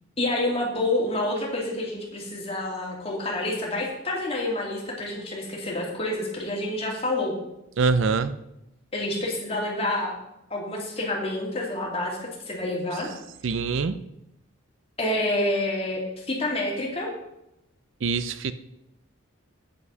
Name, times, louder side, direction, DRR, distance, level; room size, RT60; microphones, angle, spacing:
voice 1, 0.2-7.3 8.9-10.2 10.5-13.1 15.0-17.1, left 1 dB, 25° left, -2 dB, 2.4 m, -28 dB
voice 2, 7.8-8.3 13.4-14.0 18.0-18.5, right 4 dB, 65° right, 13 dB, 0.5 m, -24 dB
8.4 x 7.8 x 5.5 m, 0.85 s
head